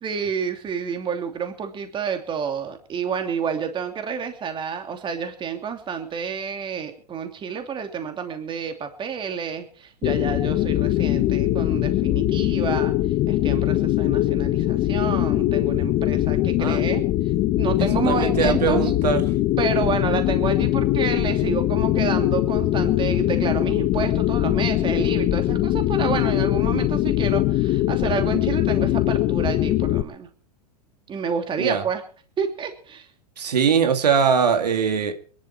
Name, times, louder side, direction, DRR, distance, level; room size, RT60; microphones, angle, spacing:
voice 1, 0.0-13.0 13.3-17.0 17.6-18.9 19.6-30.3 31.1-32.0 32.4-33.1, right 6 dB, 25° right, 6 dB, 2.8 m, -29 dB
sound 1, 10.0-30.0, left 15 dB, 35° left, 1.0 m, -22 dB
voice 2, 18.1-19.2 31.6-31.8 33.4-35.1, right 6 dB, 90° right, 6 dB, 2.3 m, -21 dB
22.0 x 11.5 x 4.5 m, 0.42 s
hypercardioid pair, 120°, 20 cm